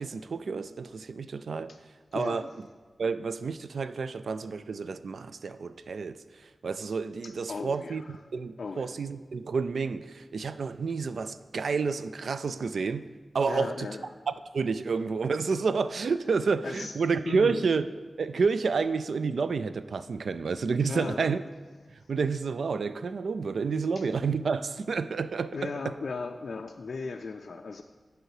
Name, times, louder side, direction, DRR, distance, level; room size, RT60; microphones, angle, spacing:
voice 1, 0.0-1.7 2.1-2.5 3.0-6.2 6.6-13.1 13.3-13.9 14.3-17.9 18.2-21.4 22.1-25.9, right 5 dB, 80° right, 0.3 m, -29 dB
voice 2, 2.1-2.5 7.2-8.2 8.6-8.9 13.5-14.1 16.6-16.9 17.2-17.7 20.9-21.3 24.0-24.1 25.5-27.8, left 4 dB, 70° left, 0.3 m, -37 dB
9.2 x 4.9 x 4.7 m
wide cardioid pair, 85°, 0 cm